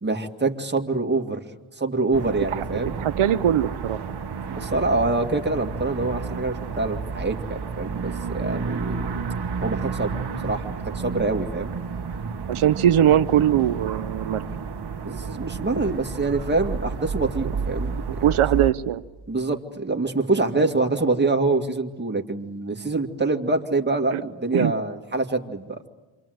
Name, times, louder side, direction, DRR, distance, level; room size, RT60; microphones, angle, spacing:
voice 1, 0.0-1.4 1.8-3.0 4.5-9.1 9.6-10.2 10.4-11.7 15.0-17.9 19.3-25.9, right 3 dB, 20° right, 3 dB, 2.2 m, -25 dB
sound 1, 2.1-18.7, right 5 dB, 50° right, 1.5 m, -31 dB
voice 2, 3.0-4.0 12.5-14.5 18.2-19.0 20.6-20.7 24.1-24.2 24.5-24.7, right 10 dB, 80° right, 12 dB, 0.8 m, -21 dB
27.5 x 25.5 x 7.9 m, 1.2 s
wide cardioid pair, 125°, 49 cm